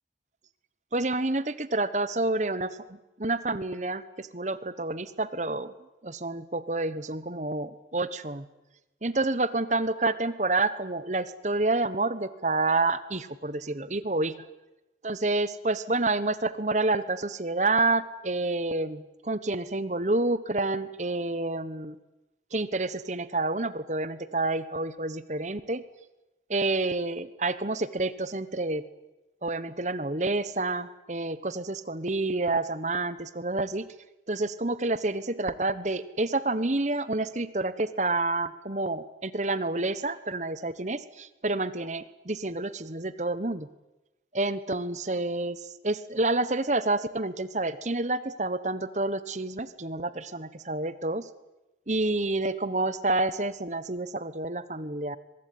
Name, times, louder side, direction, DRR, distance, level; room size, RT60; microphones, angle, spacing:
voice 1, 0.9-5.7 6.0-8.5 9.0-14.3 15.0-22.0 22.5-25.8 26.5-28.8 29.4-33.9 34.3-43.7 44.3-51.3 51.9-55.2, right 2 dB, 40° right, 15 dB, 1.2 m, -29 dB
23.0 x 22.0 x 9.5 m, 0.99 s
head